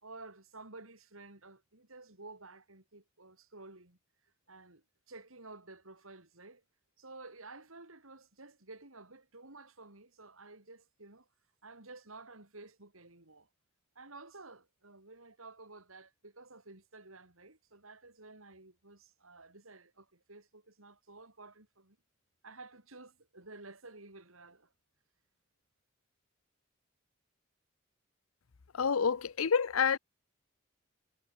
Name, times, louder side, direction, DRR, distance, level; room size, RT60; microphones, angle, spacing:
voice 1, 0.0-4.0 4.5-6.6 7.0-11.3 11.6-13.5 14.0-22.0 22.4-24.7, right 3 dB, 85° right, 5.5 m, -52 dB
voice 2, 28.7-30.0, left 6 dB, 90° left, 0.7 m, -28 dB
head